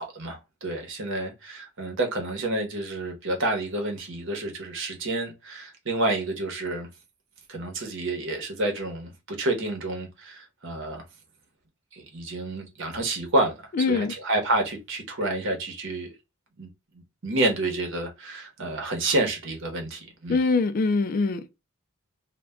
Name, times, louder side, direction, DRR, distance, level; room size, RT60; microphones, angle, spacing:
voice 1, 0.0-6.9 7.5-11.0 11.9-16.1 16.6-16.7 17.2-20.4, right 2 dB, 60° right, 0.9 m, -29 dB
voice 2, 13.7-14.1 20.3-21.5, left 4 dB, 40° left, 0.3 m, -23 dB
2.3 x 2.2 x 3.4 m
head